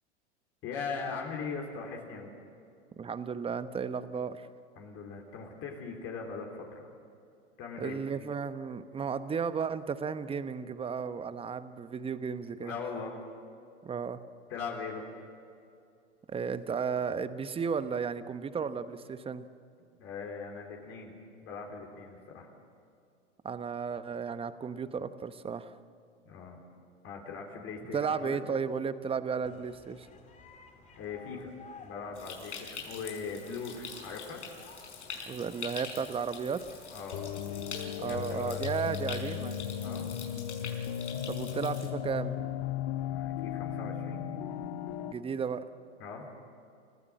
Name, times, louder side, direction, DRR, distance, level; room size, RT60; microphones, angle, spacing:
voice 1, 0.6-2.3 4.8-6.9 7.6-8.0 12.6-13.2 14.5-15.0 20.0-21.2 21.4-22.5 26.3-26.6 27.0-28.4 31.0-31.5 31.8-34.4 36.9-37.3 37.9-38.6 39.8-40.1 43.0-44.2 46.0-46.3, left 5 dB, 40° left, 0 dB, 3.9 m, -40 dB
voice 2, 3.0-4.5 7.8-12.7 13.8-14.2 16.3-19.4 23.4-25.7 27.9-30.1 35.3-36.6 38.0-39.6 41.3-42.4 45.0-45.6, right 6 dB, 15° right, 12 dB, 1.0 m, -34 dB
sound 1, 29.4-39.5, left 4 dB, 20° left, 2.6 m, -55 dB
Stream, 32.2-41.9, left 6 dB, 75° left, 5.6 m, -45 dB
sound 2, 37.1-45.1, left 10 dB, 55° left, 1.4 m, -36 dB
30.0 x 15.0 x 7.6 m, 2.5 s
hypercardioid pair, 105°, 35 cm